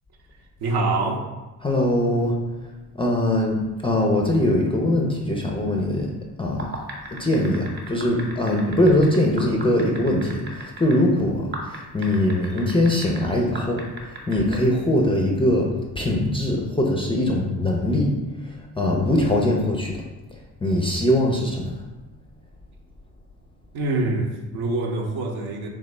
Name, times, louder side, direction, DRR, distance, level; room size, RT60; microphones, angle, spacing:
voice 1, 0.6-1.3 10.9-11.0 23.7-25.7, right 2 dB, 60° right, 2 dB, 0.7 m, -25 dB
voice 2, 1.6-2.5 2.9-6.7 7.1-21.8, left 1 dB, 15° left, -1 dB, 0.4 m, -22 dB
sound 1, 6.5-10.9 11.5-13.2 13.5-14.6, right 2 dB, 25° right, 0.8 m, -35 dB
3.4 x 2.0 x 3.2 m, 1.1 s
hypercardioid pair, 60°, 44 cm